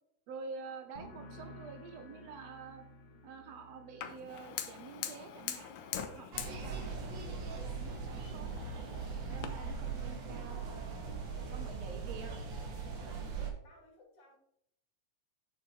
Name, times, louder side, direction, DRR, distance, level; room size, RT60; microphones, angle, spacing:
voice 1, 0.3-2.9 3.2-8.5 9.3-10.6 11.5-12.3 13.0-13.3, right 5 dB, 65° right, 6 dB, 2.3 m, -48 dB
sound 1, 0.9-8.4 8.7-9.2, left 1 dB, 35° left, 1.3 m, -56 dB
Fire, 4.0-9.5, left 10 dB, 80° left, 2.3 m, -44 dB
sound 2, 6.3-13.5, right 5 dB, 45° right, 1.9 m, -40 dB
voice 2, 11.4-12.0 13.6-14.4, left 3 dB, 50° left, 0 dB, 3.0 m, -56 dB
9.0 x 6.8 x 4.3 m, 0.70 s
omnidirectional pair, 3.4 m